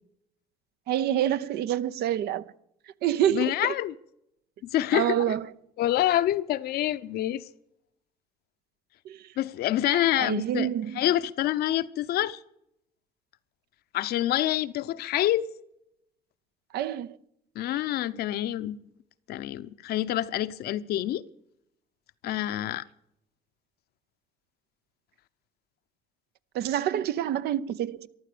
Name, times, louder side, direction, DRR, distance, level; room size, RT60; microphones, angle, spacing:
voice 1, 0.9-2.4 3.0-3.7 4.9-5.5 9.1-9.2 10.2-11.0 16.7-17.2 26.5-28.1, right 11 dB, 70° right, 0.8 m, -27 dB
voice 2, 3.3-3.9 4.7-5.4 5.8-7.4 9.4-10.7 10.9-12.4 13.9-15.5 17.5-18.8 19.3-21.2 22.2-22.8, left 13 dB, 70° left, 0.8 m, -27 dB
14.5 x 11.5 x 6.8 m
cardioid pair, 100°, 17 cm